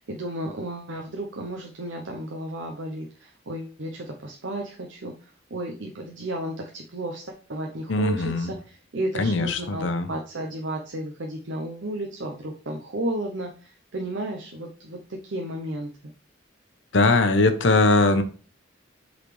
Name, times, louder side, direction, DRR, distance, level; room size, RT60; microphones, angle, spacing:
voice 1, 0.0-5.1 5.5-15.9, right 1 dB, 75° right, 1 dB, 0.8 m, -33 dB
voice 2, 7.9-8.5 9.2-10.1 16.9-18.2, left 2 dB, 75° left, 9 dB, 0.9 m, -20 dB
7.9 x 4.1 x 3.2 m, 0.39 s
head